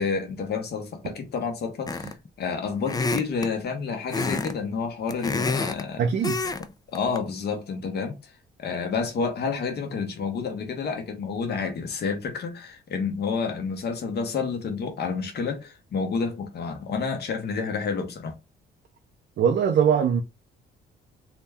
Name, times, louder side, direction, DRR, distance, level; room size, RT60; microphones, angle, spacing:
voice 1, 0.0-6.0 6.9-8.3 8.6-18.4, left 5 dB, 55° left, 0.9 m, -29 dB
sound 1, 1.9-2.3 2.9-3.5 4.1-4.5 4.8-5.8 6.2-6.6 6.9-7.2, left 3 dB, 20° left, 0.4 m, -28 dB
voice 2, 6.0-6.4 19.4-20.2, right 7 dB, 60° right, 0.5 m, -21 dB
2.8 x 2.2 x 3.4 m
cardioid pair, 90°, 20 cm